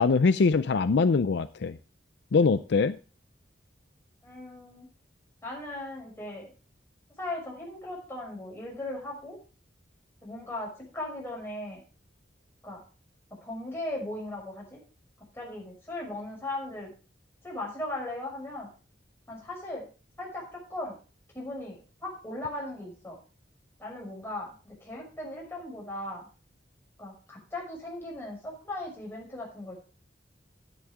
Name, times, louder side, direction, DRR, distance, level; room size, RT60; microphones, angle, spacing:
voice 1, 0.0-1.8 2.3-3.0, left 4 dB, 65° left, 13 dB, 0.5 m, -23 dB
voice 2, 4.2-4.9 5.4-6.5 7.2-9.4 10.2-11.8 12.6-12.8 13.4-14.8 15.3-16.9 17.4-18.7 19.3-19.9 20.2-21.0 21.3-23.2 23.8-26.3 27.0-29.7, left 1 dB, 15° left, -3 dB, 6.1 m, -38 dB
11.0 x 11.0 x 3.6 m, 0.35 s
head